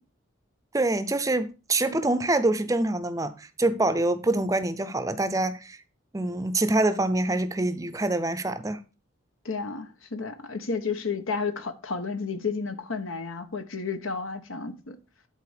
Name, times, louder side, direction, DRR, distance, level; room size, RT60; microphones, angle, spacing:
voice 1, 0.7-5.8 6.1-8.8, right 2 dB, 15° right, 0.5 m, -25 dB
voice 2, 9.4-15.0, left 4 dB, 85° left, 1.1 m, -32 dB
11.5 x 4.2 x 5.0 m
head